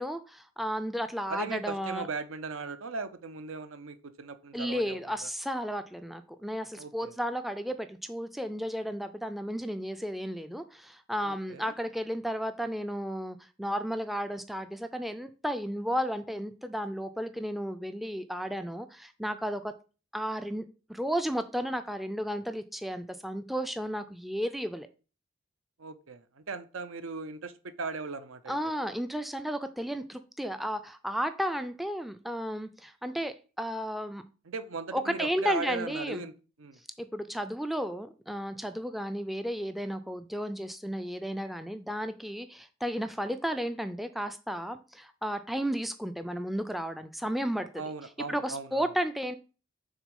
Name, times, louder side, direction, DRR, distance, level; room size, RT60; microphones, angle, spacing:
voice 1, 0.0-2.1 4.5-19.7 20.1-24.9 28.5-34.2 34.9-36.3 37.0-47.8 48.3-49.4, equal, ahead, 9 dB, 0.3 m, -33 dB
voice 2, 1.3-5.3 6.8-7.1 11.2-11.7 25.8-28.6 34.5-36.3 36.6-36.8 47.8-48.8, right 4 dB, 85° right, 12 dB, 0.7 m, -38 dB
6.3 x 3.6 x 5.2 m, 0.35 s
head